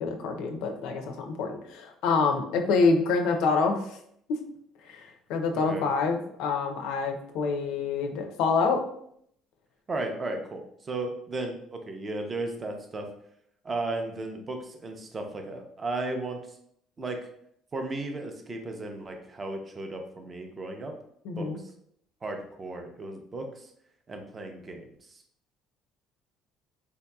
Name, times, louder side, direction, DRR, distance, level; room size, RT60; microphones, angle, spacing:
voice 1, 0.0-4.0 4.9-8.8 21.2-21.6, left 4 dB, 75° left, 5 dB, 0.5 m, -26 dB
voice 2, 9.9-13.1 13.6-16.4 17.0-17.2 17.7-20.9 21.4-21.5 22.2-23.7 24.1-25.2, right 2 dB, 20° right, 4 dB, 0.4 m, -35 dB
3.9 x 2.7 x 2.2 m, 0.69 s
cardioid pair, 165°, 0 cm